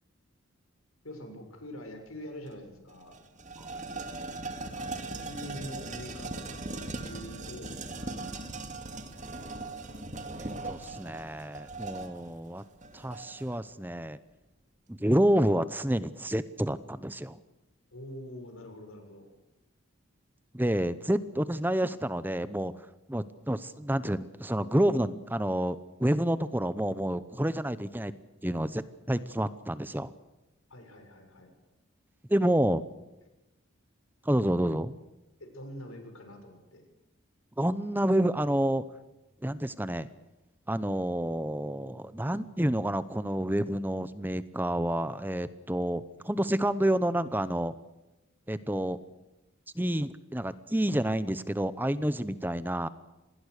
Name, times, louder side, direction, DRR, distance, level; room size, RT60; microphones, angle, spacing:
voice 1, 1.0-3.2 4.6-8.3 17.9-19.3 30.7-31.5 32.4-32.5 35.4-36.8, left 1 dB, 85° left, 5 dB, 6.7 m, -45 dB
sound 1, 2.5-2.6 2.9-13.6, right 2 dB, 35° right, 2.4 m, -39 dB
voice 2, 10.4-12.6 12.9-14.2 14.9-17.4 20.5-28.1 28.4-30.1 32.3-32.8 34.2-34.9 37.6-38.8 39.4-40.1 40.7-47.7 48.5-49.0 49.7-52.9, right 1 dB, 10° right, 14 dB, 0.7 m, -29 dB
27.0 x 20.0 x 6.6 m, 1.0 s
head